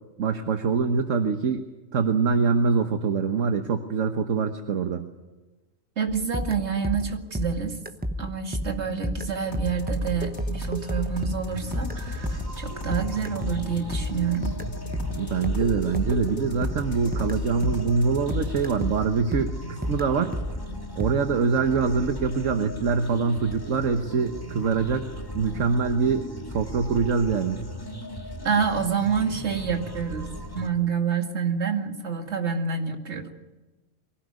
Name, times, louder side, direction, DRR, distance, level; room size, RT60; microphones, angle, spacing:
voice 1, 0.2-1.6 1.9-5.0 15.1-20.3 21.0-25.1 25.3-26.3 26.5-27.6, right 5 dB, 70° right, 6 dB, 1.5 m, -24 dB
voice 2, 6.0-7.8 8.2-14.5 28.4-30.3 30.5-33.3, right 6 dB, 55° right, 4 dB, 2.5 m, -28 dB
sound 1, 6.1-18.1 18.3-21.1, equal, 10° right, 0.7 m, -32 dB
sound 2, 9.4-18.7, left 3 dB, 90° left, 3.6 m, -39 dB
sound 3, 11.5-30.7, equal, 15° left, 2.1 m, -37 dB
23.5 x 17.5 x 9.6 m, 1.1 s
omnidirectional pair, 1.4 m